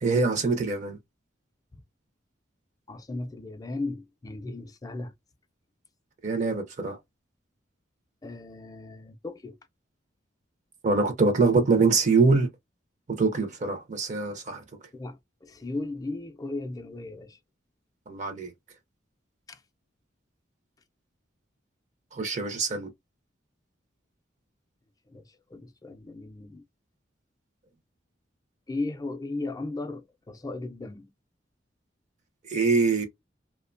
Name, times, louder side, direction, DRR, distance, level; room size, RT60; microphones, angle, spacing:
voice 1, 0.0-1.0 6.2-7.0 10.8-12.5 13.1-14.6 18.1-18.5 22.1-22.9 32.4-33.1, right 4 dB, 40° right, 0.5 m, -24 dB
voice 2, 2.9-5.1 8.2-9.6 14.9-17.4 19.5-19.6 25.1-26.6 28.7-31.1, left 2 dB, 20° left, 0.3 m, -36 dB
2.7 x 2.1 x 2.4 m
head